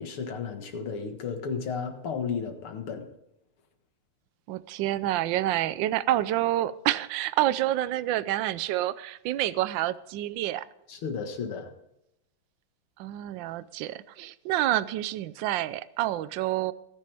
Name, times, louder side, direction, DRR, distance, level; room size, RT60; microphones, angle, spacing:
voice 1, 0.0-3.1 10.9-11.7, left 6 dB, 80° left, 2.5 m, -33 dB
voice 2, 4.5-10.7 13.0-16.7, right 14 dB, 70° right, 1.2 m, -28 dB
19.0 x 10.0 x 3.4 m
omnidirectional pair, 2.4 m